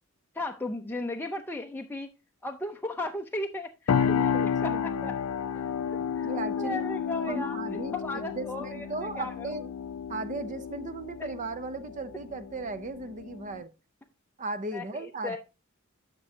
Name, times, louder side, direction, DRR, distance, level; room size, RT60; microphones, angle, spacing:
voice 1, 0.3-2.1 2.4-3.9 4.2-5.1 5.5-6.3 6.6-9.7 11.2-11.3 14.7-15.4, left 2 dB, 10° left, 0.5 m, -36 dB
sound 1, 3.9-13.6, left 7 dB, 85° left, 0.4 m, -31 dB
voice 2, 3.9-5.1 6.2-6.8 7.3-7.9 8.3-9.6 10.1-13.7 14.4-15.4, right 2 dB, 35° right, 0.6 m, -36 dB
11.0 x 6.0 x 2.7 m
head